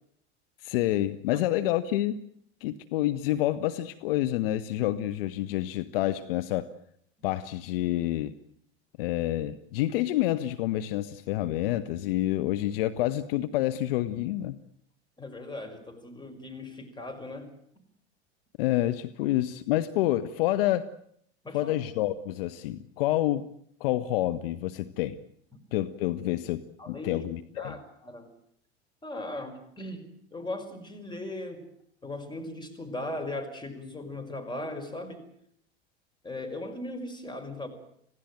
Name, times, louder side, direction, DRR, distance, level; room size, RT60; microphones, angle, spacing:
voice 1, 0.6-2.2 2.6-6.7 7.2-8.3 9.0-14.6 18.6-20.9 21.5-23.5 23.8-25.2 25.7-27.7, left 14 dB, 55° left, 13 dB, 1.1 m, -28 dB
voice 2, 15.2-17.5 21.4-21.8 26.8-27.3 27.6-28.3 29.0-30.0 30.3-31.6 32.0-35.2 36.2-37.7, left 1 dB, 15° left, 5 dB, 5.8 m, -38 dB
26.5 x 17.0 x 9.1 m, 0.70 s
figure-of-eight pair, 85°, 33 cm